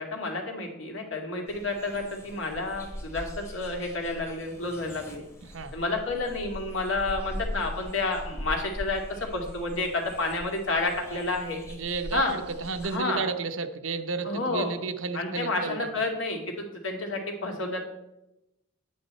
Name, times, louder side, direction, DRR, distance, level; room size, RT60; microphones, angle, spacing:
voice 1, 0.0-5.2 5.7-11.6 12.1-12.3 12.9-13.2 14.2-14.7 15.1-17.8, left 2 dB, 70° left, 1 dB, 2.3 m, -30 dB
sound 1, 1.5-13.0, equal, 15° left, 1.3 m, -41 dB
voice 2, 11.7-15.9, right 4 dB, 80° right, 8 dB, 0.8 m, -32 dB
10.0 x 8.6 x 4.3 m, 0.89 s
head